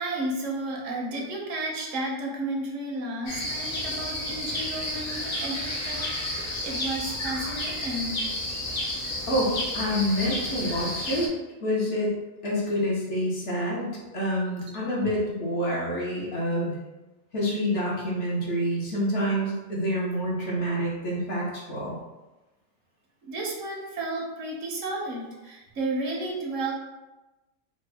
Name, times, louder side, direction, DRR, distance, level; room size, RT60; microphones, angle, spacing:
voice 1, 0.0-6.0 6.3-8.2 23.2-26.7, right 2 dB, 70° right, -1 dB, 1.0 m, -32 dB
sound 1, 3.3-11.3, left 1 dB, 45° left, 0.6 m, -31 dB
voice 2, 9.3-11.3 11.6-12.1 12.4-16.8 17.3-22.0, equal, 60° left, -5 dB, 1.2 m, -27 dB
3.6 x 2.2 x 3.3 m, 1.1 s
omnidirectional pair, 1.4 m